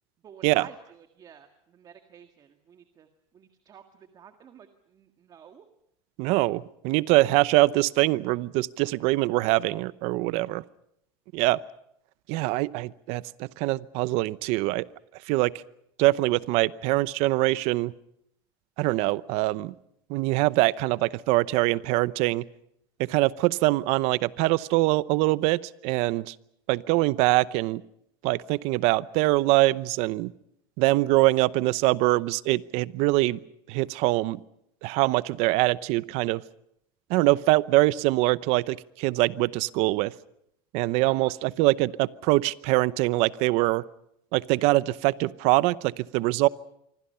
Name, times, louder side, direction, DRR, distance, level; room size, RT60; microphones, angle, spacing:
voice 1, 0.2-3.1 3.3-5.7 41.0-41.3, right 8 dB, 35° right, 7 dB, 1.8 m, -51 dB
voice 2, 6.2-10.6 11.3-11.6 12.3-14.9 15.3-15.5 16.0-17.9 18.8-19.7 20.1-22.4 23.0-26.3 26.7-27.8 28.2-30.3 30.8-33.4 33.7-34.4 34.8-36.4 37.1-40.1 40.7-43.8 44.3-46.5, right 20 dB, 60° right, 18 dB, 0.8 m, -23 dB
26.5 x 24.5 x 5.6 m, 0.75 s
supercardioid pair, 135°, 12 cm